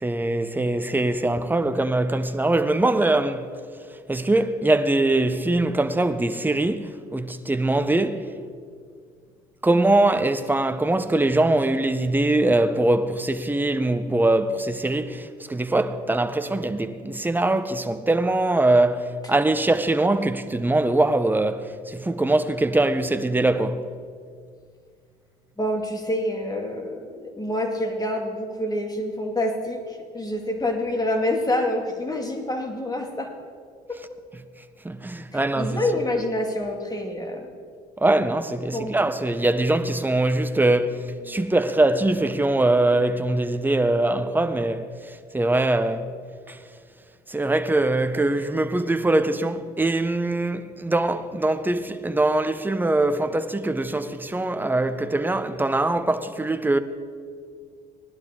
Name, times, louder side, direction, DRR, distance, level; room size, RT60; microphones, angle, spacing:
voice 1, 0.0-3.5 4.1-8.4 9.6-23.9 34.8-35.8 38.0-46.1 46.5-46.6 47.3-56.8, right 2 dB, 10° right, 0.8 m, -22 dB
voice 2, 25.6-33.3 33.9-34.0 35.3-37.5 38.7-39.0, left 1 dB, 20° left, 2.3 m, -27 dB
18.0 x 11.5 x 3.8 m
supercardioid pair, 65°, 18 cm